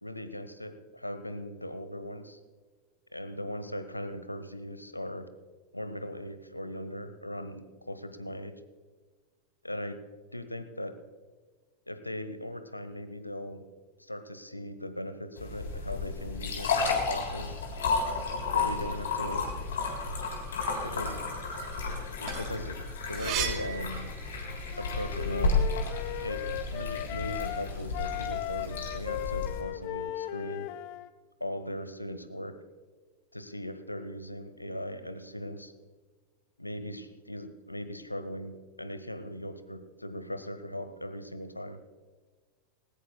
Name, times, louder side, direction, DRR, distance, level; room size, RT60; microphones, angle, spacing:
voice 1, 0.0-2.4 3.1-5.3 5.7-8.5 9.6-10.0 10.3-10.9 11.9-13.6 14.0-17.6 18.5-19.5 20.8-21.2 22.2-22.8 23.1-24.1 24.8-25.6 26.2-26.4 26.7-30.7 31.4-32.5 33.3-35.7 36.6-41.8, left 1 dB, 85° left, 10 dB, 1.0 m, -39 dB
sound 1, 15.4-29.6, left 4 dB, 65° left, 3.3 m, -32 dB
sound 2, 22.0-24.7 25.1-26.5, right 10 dB, 40° right, 1.6 m, -37 dB
Wind instrument woodwind instrument, 24.7-27.6 27.9-31.1, left 13 dB, 45° left, 0.5 m, -37 dB
19.5 x 19.0 x 2.2 m, 1.4 s
figure-of-eight pair, 90°, 0 cm